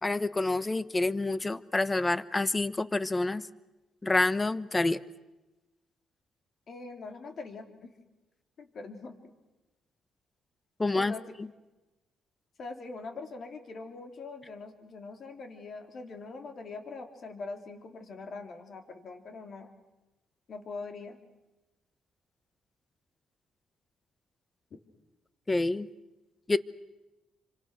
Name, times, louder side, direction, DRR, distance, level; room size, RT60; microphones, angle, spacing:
voice 1, 0.0-3.4 4.0-5.0 10.8-11.1 11.4-11.5 25.5-25.9 26.5-26.6, left 2 dB, 20° left, 15 dB, 1.0 m, -27 dB
voice 2, 6.7-7.9 8.6-9.3 10.9-11.2 12.6-19.7 20.5-21.2, left 3 dB, 55° left, 5 dB, 3.7 m, -43 dB
29.0 x 25.5 x 6.4 m, 1.1 s
cardioid pair, 90°, 0 cm